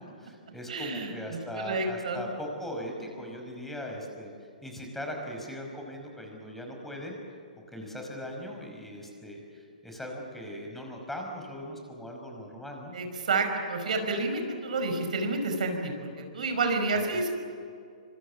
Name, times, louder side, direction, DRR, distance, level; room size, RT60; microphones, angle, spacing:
voice 1, 0.0-7.2 7.7-12.9 16.9-17.1, equal, 5° left, 1 dB, 5.6 m, -39 dB
voice 2, 0.7-1.1 1.6-2.2 12.9-17.3, right 3 dB, 65° right, 5 dB, 5.2 m, -29 dB
27.0 x 26.0 x 7.5 m, 2.3 s
figure-of-eight pair, 120°, 4 cm